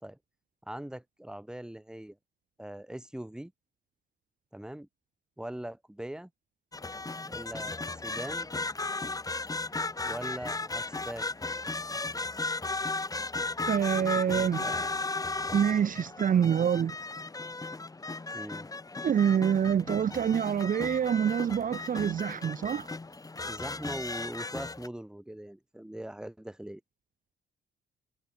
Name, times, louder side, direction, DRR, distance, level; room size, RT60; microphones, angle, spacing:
voice 1, 0.6-2.2 2.6-3.5 4.5-4.9 5.4-6.3 7.2-8.5 10.0-11.3 14.0-14.9 18.3-18.7 23.5-26.8, right 1 dB, 5° right, 1.3 m, -41 dB
sound 1, 6.7-24.9, left 3 dB, 15° left, 1.2 m, -35 dB
voice 2, 13.7-14.6 15.5-17.0 19.0-22.9, right 8 dB, 45° right, 0.7 m, -26 dB
cardioid pair, 90°, 20 cm